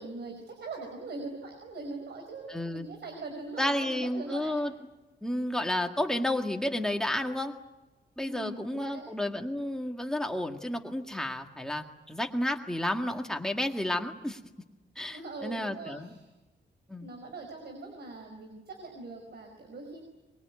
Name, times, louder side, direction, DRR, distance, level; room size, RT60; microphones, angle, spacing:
voice 1, 0.0-4.6 8.2-9.0 15.1-16.3 17.0-20.0, right 3 dB, 65° right, 3 dB, 5.1 m, -42 dB
voice 2, 2.5-2.9 3.6-4.7 5.2-7.5 8.2-14.4 15.0-16.1 16.9-17.1, left 1 dB, 5° left, 3 dB, 1.8 m, -31 dB
24.5 x 23.0 x 9.5 m, 1.1 s
wide cardioid pair, 170°, 19 cm